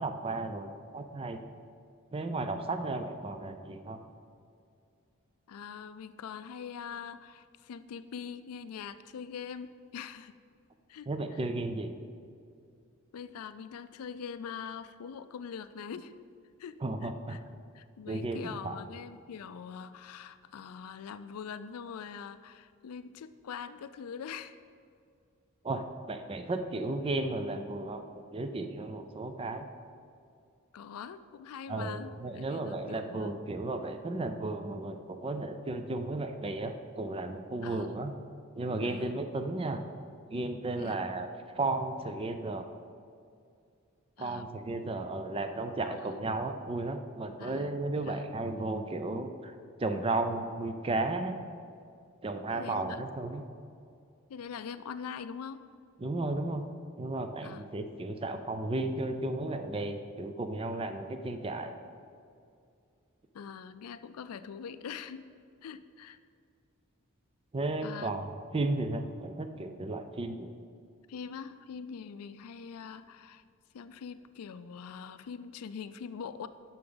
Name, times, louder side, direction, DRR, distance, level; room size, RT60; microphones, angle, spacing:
voice 1, 0.0-1.4 2.1-4.0 11.1-11.9 16.8-17.4 18.1-18.8 25.6-29.7 31.7-38.1 38.6-39.8 40.3-41.3 41.5-42.7 44.2-49.5 49.8-51.4 52.2-53.5 56.0-56.6 57.0-61.7 67.5-68.2 68.5-70.5, right 2 dB, 25° right, 8 dB, 0.4 m, -34 dB
voice 2, 5.5-10.4 10.9-11.4 13.1-16.1 16.6-17.4 17.7-24.6 30.7-33.4 37.6-38.1 38.8-39.2 40.8-41.1 44.2-44.5 45.8-46.2 47.4-48.3 52.5-53.1 54.3-55.6 57.4-57.7 63.3-65.2 65.6-66.2 67.8-68.1 71.1-73.4 73.7-76.5, left 7 dB, 75° left, 13 dB, 0.4 m, -43 dB
9.6 x 5.8 x 3.9 m, 2.4 s
head